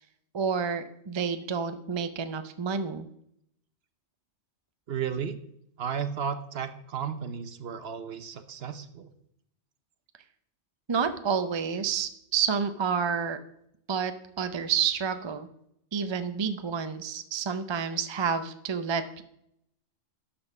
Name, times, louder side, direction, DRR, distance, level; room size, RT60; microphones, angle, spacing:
voice 1, 0.3-3.1 10.9-13.4 13.9-15.5 15.9-19.2, right 6 dB, 30° right, 10 dB, 0.5 m, -29 dB
voice 2, 4.9-5.3 5.8-9.1, right 7 dB, 60° right, 10 dB, 1.0 m, -33 dB
12.0 x 4.3 x 7.1 m, 0.74 s
omnidirectional pair, 1.2 m